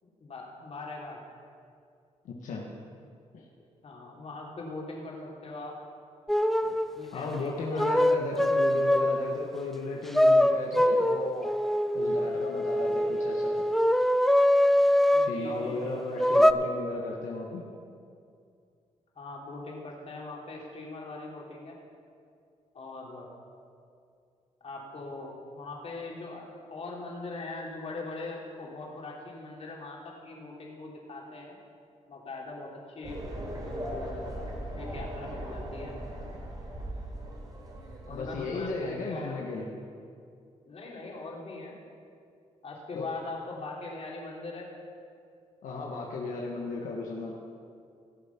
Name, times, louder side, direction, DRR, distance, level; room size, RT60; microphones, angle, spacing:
voice 1, 0.0-1.2 3.8-5.8 6.9-8.0 15.1-16.4 19.1-21.8 22.7-23.3 24.6-31.6 32.1-34.2 34.7-36.0 38.1-39.5 40.6-41.7 42.6-44.7, left 3 dB, 50° left, -3 dB, 3.1 m, -41 dB
voice 2, 2.2-2.7 3.3-3.4 7.1-11.6 11.9-13.5 15.2-17.6 38.1-39.7 42.9-43.1 45.6-47.4, left 3 dB, 85° left, -1 dB, 1.3 m, -35 dB
sound 1, 6.3-6.9 7.8-9.3 10.1-15.4 16.2-16.5, left 1 dB, ahead, 0.4 m, -23 dB
sound 2, 33.0-38.7, right 1 dB, 30° right, 3.2 m, -39 dB
17.5 x 7.1 x 5.9 m, 2.4 s
cardioid pair, 90°, 13 cm